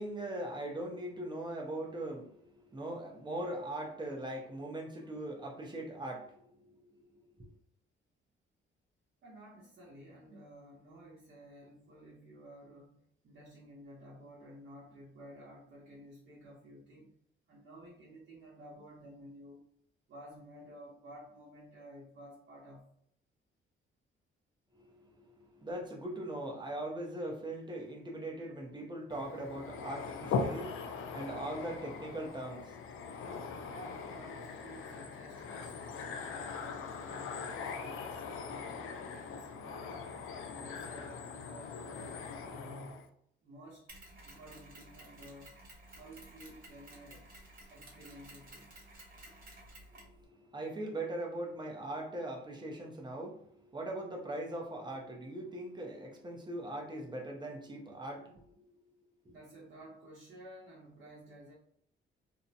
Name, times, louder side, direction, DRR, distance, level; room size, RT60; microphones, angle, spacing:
voice 1, 0.0-6.8 7.2-7.3 24.8-33.4 49.9-58.6, right 1 dB, 20° right, 0.6 m, -41 dB
voice 2, 9.2-13.0 13.2-17.1 17.5-19.7 20.1-22.9 33.7-40.0 40.5-43.1 43.4-43.9 44.2-45.6 45.9-47.2 47.7-48.7 59.3-61.5, equal, 55° right, 0.8 m, -53 dB
sound 1, 29.1-43.1, left 5 dB, 75° left, 0.4 m, -41 dB
Mechanisms, 43.9-50.2, right 1 dB, 40° right, 1.1 m, -54 dB
2.6 x 2.1 x 2.7 m
cardioid pair, 105°, 21 cm